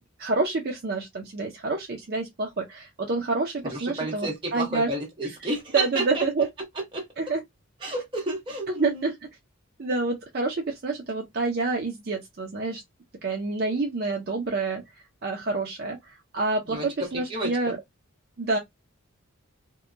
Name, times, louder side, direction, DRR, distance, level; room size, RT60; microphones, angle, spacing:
voice 1, 0.2-4.9 5.7-6.5 7.2-7.4 8.8-9.1 9.8-12.8 13.2-14.8 15.2-17.8 18.4-18.6, right 3 dB, 45° right, 0.5 m, -28 dB
voice 2, 3.6-6.3 6.7-7.1 7.8-9.1 16.7-17.8, right 2 dB, 25° right, 1.0 m, -31 dB
2.8 x 2.1 x 2.4 m
head